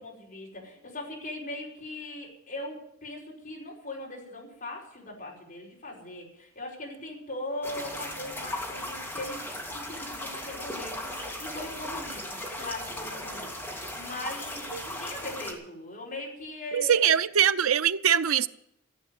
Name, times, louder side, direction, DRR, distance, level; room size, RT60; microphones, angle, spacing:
voice 1, 0.0-9.4 9.7-17.3, left 1 dB, 40° left, 5.1 m, -40 dB
sound 1, 7.6-15.5, left 1 dB, 10° left, 2.3 m, -37 dB
voice 2, 16.7-18.5, right 9 dB, 85° right, 0.6 m, -22 dB
15.0 x 8.3 x 9.6 m
head